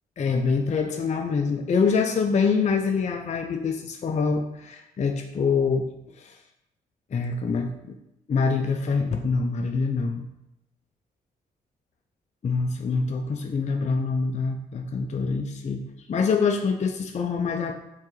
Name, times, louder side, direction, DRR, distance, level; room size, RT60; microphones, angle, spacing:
voice 1, 0.2-5.9 6.1-6.4 7.1-7.9 8.3-10.3 12.4-15.8 16.1-17.7, left 5 dB, 35° left, 4 dB, 0.5 m, -25 dB
4.4 x 3.8 x 3.1 m, 0.86 s
hypercardioid pair, 40°, 21 cm